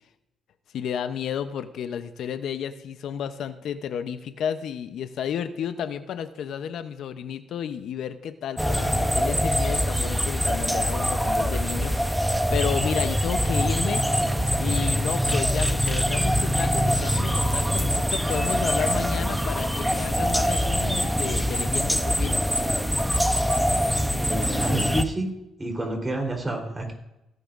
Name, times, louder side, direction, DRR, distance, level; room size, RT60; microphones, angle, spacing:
voice 1, 0.7-14.0 14.6-22.5, left 8 dB, 75° left, 10 dB, 0.7 m, -32 dB
sound 1, 8.6-25.0, equal, ahead, 0.7 m, -24 dB
voice 2, 24.2-25.3 25.6-26.9, right 1 dB, 20° right, 1 dB, 3.6 m, -29 dB
16.5 x 10.5 x 2.5 m, 0.89 s
cardioid pair, 90°, 0 cm